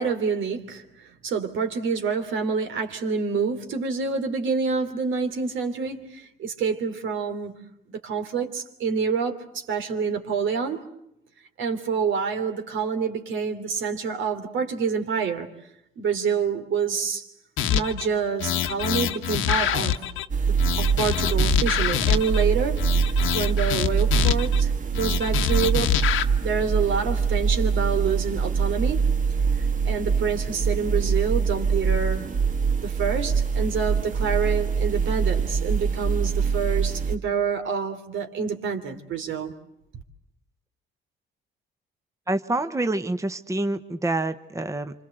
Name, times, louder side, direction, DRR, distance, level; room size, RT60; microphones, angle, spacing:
voice 1, 0.0-7.6 7.9-10.9 11.6-15.5 16.0-17.3 17.7-20.0 20.4-25.9 26.4-29.1 29.6-32.3 32.8-39.5, right 6 dB, 75° right, 3.3 m, -27 dB
sound 1, 17.6-18.1 18.4-20.3 20.6-22.4 22.8-24.6 24.9-26.2, left 10 dB, 85° left, 1.3 m, -25 dB
sound 2, 20.3-37.2, right 6 dB, 40° right, 1.6 m, -24 dB
voice 2, 42.3-44.9, right 2 dB, 15° right, 1.2 m, -27 dB
27.0 x 26.0 x 7.9 m
cardioid pair, 90°, 20 cm